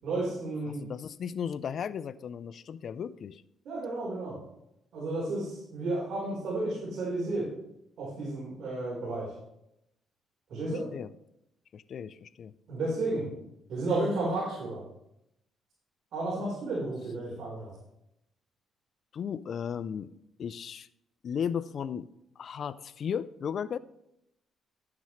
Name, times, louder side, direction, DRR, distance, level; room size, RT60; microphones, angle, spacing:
voice 1, 0.0-0.8 3.6-4.4 4.9-7.5 8.0-9.3 10.5-10.9 12.7-13.3 13.7-14.8 16.1-17.7, right 2 dB, 70° right, -6 dB, 4.3 m, -32 dB
voice 2, 0.7-3.4 10.9-11.1 11.7-12.5 19.1-20.1 20.4-20.9 21.2-22.1 22.4-23.8, left 7 dB, 60° left, 16 dB, 0.4 m, -35 dB
11.5 x 9.6 x 3.2 m, 0.81 s
cardioid pair, 90°, 0 cm